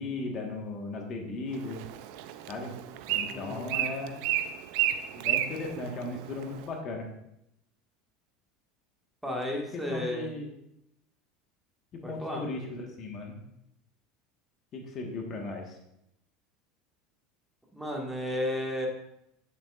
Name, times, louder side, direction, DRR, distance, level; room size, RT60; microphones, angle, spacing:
voice 1, 0.0-1.8 2.5-2.7 3.1-4.2 5.2-7.1 9.5-10.5 11.9-13.4 14.7-15.8, left 3 dB, 45° left, 1 dB, 1.5 m, -37 dB
Bird, 1.5-6.7, right 12 dB, 70° right, 0.5 m, -32 dB
voice 2, 3.3-3.8 9.2-10.3 12.0-12.4 17.7-18.9, left 1 dB, 5° right, -1 dB, 1.8 m, -33 dB
9.1 x 6.9 x 2.5 m, 0.80 s
hypercardioid pair, 95°, 0 cm